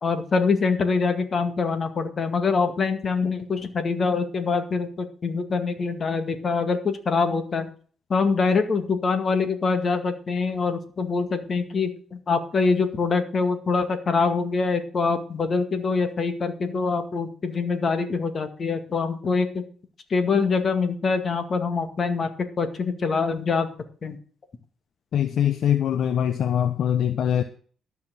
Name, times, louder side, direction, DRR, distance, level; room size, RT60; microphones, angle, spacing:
voice 1, 0.0-7.7 8.1-19.6 20.1-22.3 22.6-23.7 24.0-24.2, left 4 dB, 45° left, 2.0 m, -24 dB
voice 2, 25.1-27.4, left 9 dB, 65° left, 0.8 m, -23 dB
13.0 x 6.0 x 7.7 m
cardioid pair, 90°, 0 cm